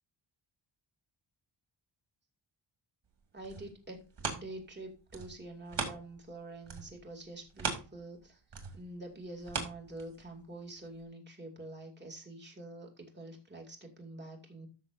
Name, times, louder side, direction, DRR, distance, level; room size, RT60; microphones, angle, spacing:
sound 1, 3.2-6.4 6.6-10.5 11.0-11.1, right 5 dB, 60° right, 2.2 m, -40 dB
voice 1, 3.3-4.0 4.3-8.4 8.7-14.7, right 2 dB, 20° right, 0 dB, 2.5 m, -46 dB
14.0 x 6.4 x 2.6 m, 0.31 s
wide cardioid pair, 130°, 48 cm